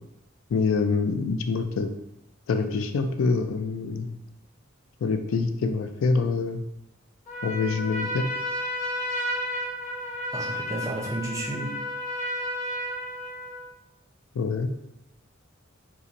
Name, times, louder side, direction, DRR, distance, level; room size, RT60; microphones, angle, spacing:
voice 1, 0.5-1.9 2.5-4.1 5.0-6.6 7.4-8.2 14.4-14.7, left 4 dB, 75° left, 6 dB, 0.3 m, -25 dB
Trumpet, 7.3-13.7, equal, 40° left, 0.8 m, -32 dB
voice 2, 10.3-11.8, right 1 dB, 15° right, -1 dB, 0.5 m, -32 dB
2.8 x 2.5 x 3.8 m, 0.85 s
head